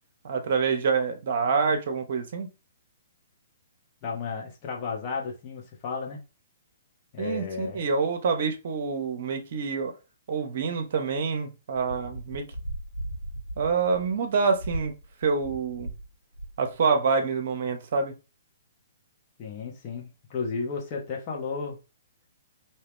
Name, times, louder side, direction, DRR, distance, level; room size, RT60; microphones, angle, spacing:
voice 1, 0.2-2.5 7.2-9.9 10.3-12.5 13.6-14.9 15.2-15.9 16.6-18.1, right 5 dB, 55° right, 0.7 m, -26 dB
voice 2, 4.0-6.2 7.1-7.8 19.4-21.8, left 5 dB, 35° left, 1.0 m, -33 dB
sound 1, 11.9-16.1 16.3-16.7, right 1 dB, 85° left, 0.5 m, -37 dB
2.7 x 2.2 x 3.6 m
figure-of-eight pair, 120°, 0 cm